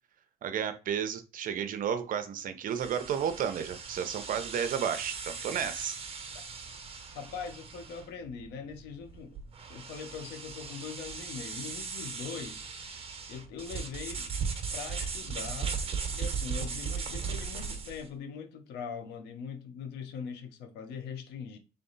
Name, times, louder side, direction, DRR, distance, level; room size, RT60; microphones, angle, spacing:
voice 1, 0.4-6.0, right 8 dB, 55° right, 0.7 m, -32 dB
sound 1, 2.7-18.1, right 5 dB, 35° right, 1.2 m, -38 dB
voice 2, 7.1-9.4 9.7-14.3 14.7-15.8 16.1-21.6, left 6 dB, 85° left, 0.9 m, -42 dB
3.7 x 3.4 x 4.0 m
cardioid pair, 110°, 17 cm